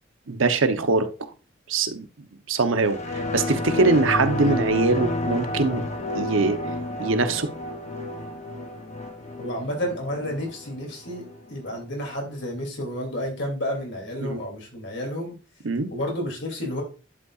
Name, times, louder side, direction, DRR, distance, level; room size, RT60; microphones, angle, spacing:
voice 1, 0.3-1.1 1.7-2.1 2.5-5.8 6.1-6.6 7.0-7.5 14.3-14.4 15.6-15.9, right 3 dB, 85° right, 0.9 m, -22 dB
sound 1, 2.8-11.8 12.2-12.3, left 1 dB, 35° left, 1.0 m, -30 dB
voice 2, 9.4-15.4 15.9-16.8, equal, 65° left, 2.8 m, -31 dB
11.0 x 5.5 x 2.4 m
head